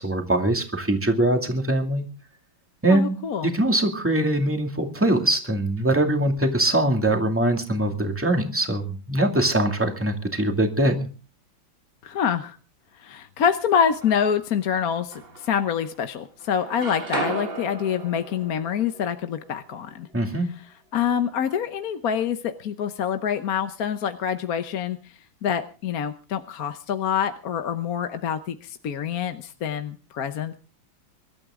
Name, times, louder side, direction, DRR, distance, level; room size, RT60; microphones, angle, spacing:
voice 1, 0.0-2.1 2.8-3.2 3.4-11.1 20.1-20.5, right 1 dB, 5° right, 4 dB, 2.2 m, -22 dB
voice 2, 2.9-3.5 12.0-12.6 13.0-20.1 20.9-25.0 25.4-30.6, left 8 dB, 55° left, 8 dB, 1.2 m, -26 dB
sound 1, 13.7-14.6 15.1-16.1 16.4-20.4, right 3 dB, 30° right, 1.7 m, -36 dB
25.0 x 12.5 x 3.7 m, 0.36 s
omnidirectional pair, 2.1 m